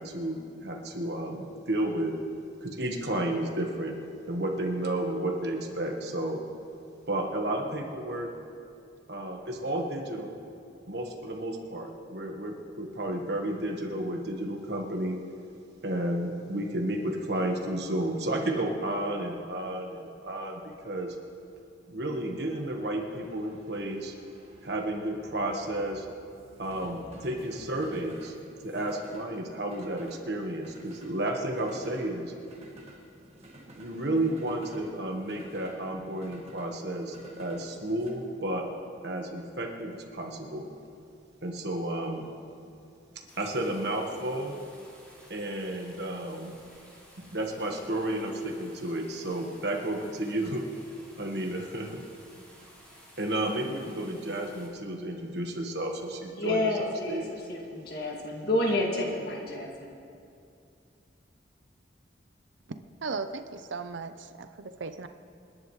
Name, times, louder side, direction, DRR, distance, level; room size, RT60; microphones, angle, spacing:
voice 1, 0.0-2.1 2.6-3.9 4.3-6.4 7.1-8.3 9.1-10.4 10.9-15.2 15.8-21.2 21.9-24.1 24.6-26.1 26.6-28.3 28.6-32.3 33.8-38.7 39.0-40.7 41.4-42.3 43.4-44.5 45.3-46.6 47.3-50.6 51.2-52.0 53.2-57.2, right 1 dB, 60° right, 1 dB, 1.3 m, -32 dB
sound 1, 19.7-38.1, right 1 dB, 35° right, 1.7 m, -52 dB
sound 2, 43.3-54.7, equal, 10° left, 3.4 m, -55 dB
voice 2, 56.3-60.0, left 1 dB, 55° left, -1 dB, 2.1 m, -30 dB
voice 3, 63.0-65.1, right 4 dB, 80° right, 10 dB, 0.6 m, -37 dB
28.0 x 10.5 x 3.2 m, 2.5 s
head